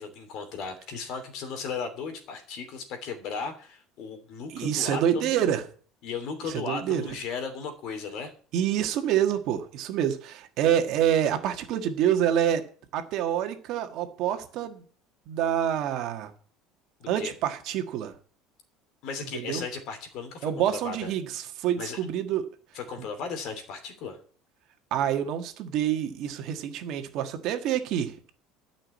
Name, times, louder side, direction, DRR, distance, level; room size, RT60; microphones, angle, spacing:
voice 1, 0.0-5.4 6.0-8.3 17.0-17.3 19.0-21.1 21.8-22.0 22.7-24.2, left 5 dB, 50° left, 7 dB, 2.9 m, -36 dB
voice 2, 4.5-5.6 6.5-7.0 8.5-12.6 12.9-14.8 15.3-16.3 17.1-18.1 19.3-19.6 20.4-22.5 23.0-23.1 24.9-28.1, right 10 dB, 50° right, 6 dB, 1.6 m, -27 dB
13.0 x 5.9 x 8.4 m, 0.44 s
cardioid pair, 170°, 0 cm